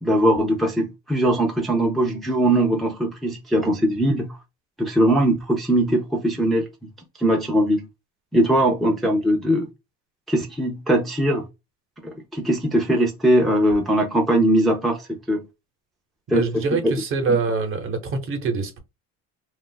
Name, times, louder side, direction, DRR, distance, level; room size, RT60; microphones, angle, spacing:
voice 1, 0.0-4.4 4.8-6.7 7.2-7.9 8.3-9.7 10.3-11.5 12.0-15.4 16.3-16.9, right 1 dB, ahead, 0.5 m, -20 dB
voice 2, 16.3-18.8, right 4 dB, 45° right, 0.9 m, -24 dB
2.4 x 2.0 x 3.8 m
cardioid pair, 125°, 30 cm